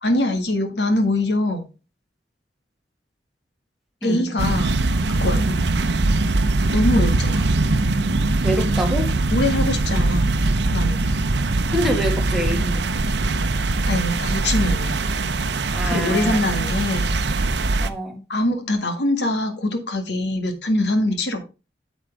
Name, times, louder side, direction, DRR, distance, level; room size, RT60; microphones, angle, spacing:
voice 1, 0.0-1.6 4.0-4.8 5.1-5.4 6.7-7.5 9.3-10.3 10.7-11.1 13.9-15.0 15.9-17.1 17.5-17.7 18.3-21.4, left 1 dB, 70° left, 1.8 m, -23 dB
sound 1, 4.4-17.9, right 2 dB, 70° right, 0.7 m, -21 dB
voice 2, 8.4-9.1 11.7-13.0 15.7-16.6 17.8-18.2, equal, ahead, 1.6 m, -26 dB
9.0 x 7.3 x 3.4 m
head